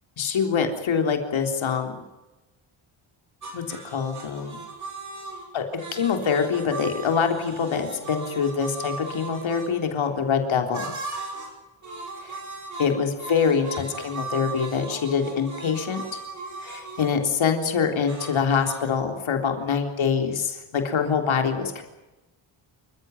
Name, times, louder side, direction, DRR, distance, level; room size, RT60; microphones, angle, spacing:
voice 1, 0.2-2.0 3.5-4.6 5.5-5.6 5.9-10.9 12.2-12.4 12.8-16.0 16.6-21.8, left 6 dB, 70° left, 4 dB, 3.8 m, -25 dB
sound 1, 3.4-9.7 10.7-11.6 11.8-17.2 18.1-18.8, right 3 dB, 35° right, 6.4 m, -38 dB
28.5 x 15.5 x 9.3 m, 1.0 s
wide cardioid pair, 170°, 49 cm